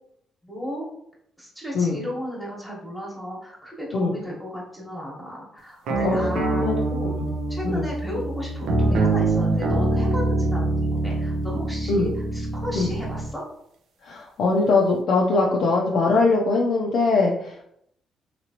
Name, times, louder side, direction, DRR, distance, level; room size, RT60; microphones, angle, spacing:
voice 1, 0.4-0.8 1.4-7.2 7.5-13.4, equal, 5° left, -5 dB, 1.1 m, -34 dB
sound 1, 5.9-13.3, right 2 dB, 80° right, 0.5 m, -24 dB
voice 2, 6.0-6.8 7.2-7.3 7.6-7.9 11.9-12.1 12.7-12.9 14.0-17.6, left 3 dB, 70° left, -3 dB, 0.5 m, -21 dB
2.9 x 2.9 x 2.8 m, 0.72 s
cardioid pair, 90°, 0 cm